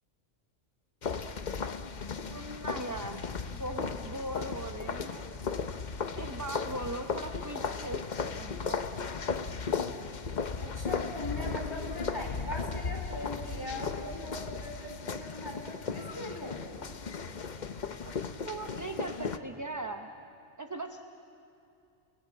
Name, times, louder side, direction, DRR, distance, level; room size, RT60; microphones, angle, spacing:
sound 1, 1.0-19.4, left 5 dB, 40° left, 0.8 m, -36 dB
voice 1, 2.2-3.2 3.5-5.4 6.1-8.0 8.3-8.8 18.4-20.1 20.6-21.0, right 2 dB, 15° right, 5 dB, 0.7 m, -39 dB
voice 2, 10.6-16.6, left 1 dB, 15° left, 0 dB, 3.8 m, -40 dB
29.0 x 19.5 x 8.5 m, 2.6 s
omnidirectional pair, 1.3 m